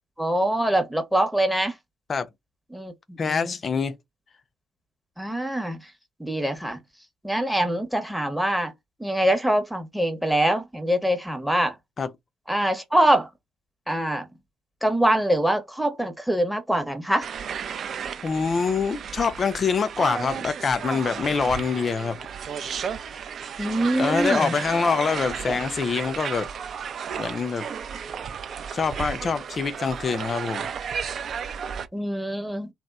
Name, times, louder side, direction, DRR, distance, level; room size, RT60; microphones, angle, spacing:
voice 1, 0.2-1.7 2.7-3.5 5.2-5.8 6.2-6.8 7.2-8.7 9.0-11.7 12.5-13.3 13.9-14.3 14.8-17.3 23.6-24.5 25.5-25.6 31.9-32.7, right 1 dB, ahead, 0.7 m, -24 dB
voice 2, 3.2-4.0 12.0-12.1 18.2-22.2 24.0-26.5 27.2-27.6 28.7-30.7, left 5 dB, 40° left, 0.4 m, -25 dB
sound 1, 17.2-31.9, right 7 dB, 50° right, 0.4 m, -33 dB
2.8 x 2.1 x 2.3 m
figure-of-eight pair, 50°, 0 cm